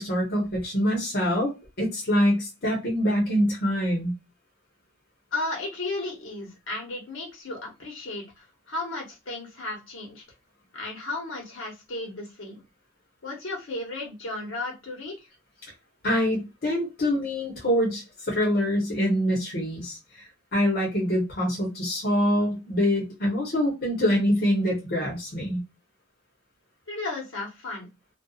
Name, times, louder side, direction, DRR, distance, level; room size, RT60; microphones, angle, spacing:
voice 1, 0.0-1.5 1.8-4.1 16.0-25.6, equal, 55° left, -3 dB, 1.0 m, -25 dB
voice 2, 5.3-10.2 10.7-12.6 13.2-15.3 26.9-27.9, left 2 dB, 75° left, -1 dB, 1.2 m, -34 dB
2.6 x 2.3 x 2.4 m, 0.25 s
head